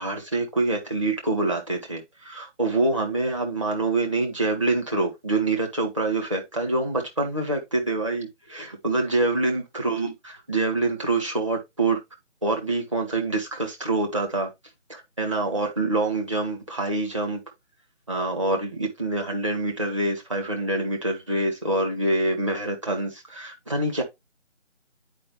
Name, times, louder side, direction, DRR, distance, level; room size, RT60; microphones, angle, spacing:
voice 1, 0.0-12.0 12.4-14.5 14.9-17.4 18.1-24.0, right 2 dB, 25° right, 1.3 m, -26 dB
9.9 x 4.6 x 3.0 m
figure-of-eight pair, 160°, 38 cm